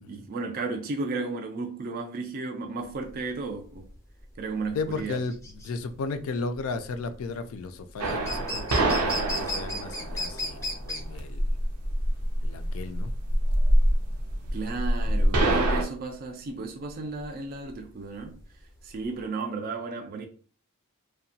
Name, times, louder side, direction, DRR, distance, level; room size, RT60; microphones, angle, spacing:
voice 1, 0.0-3.9 4.4-5.2 14.5-18.4 18.8-20.3, right 3 dB, 40° right, 0.3 m, -34 dB
sound 1, 2.9-19.2, left 1 dB, 15° left, 0.5 m, -37 dB
voice 2, 4.7-11.5 12.4-13.1, left 4 dB, 65° left, 0.3 m, -34 dB
sound 2, 8.0-15.8, right 1 dB, 85° right, 0.6 m, -25 dB
2.8 x 2.1 x 2.7 m
head